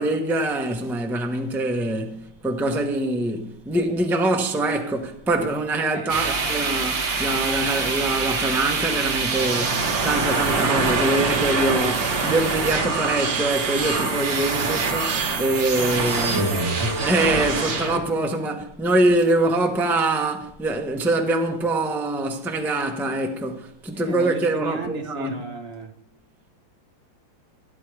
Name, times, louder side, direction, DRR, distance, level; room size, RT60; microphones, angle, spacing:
voice 1, 0.0-16.4 17.0-25.3, right 2 dB, ahead, 0.7 m, -24 dB
voice 2, 5.8-6.5 14.6-14.7 15.9-17.1 23.9-25.9, right 2 dB, 40° right, 1.1 m, -35 dB
sound 1, 6.1-18.0, right 4 dB, 75° right, 2.2 m, -24 dB
16.5 x 9.6 x 3.3 m
omnidirectional pair, 2.0 m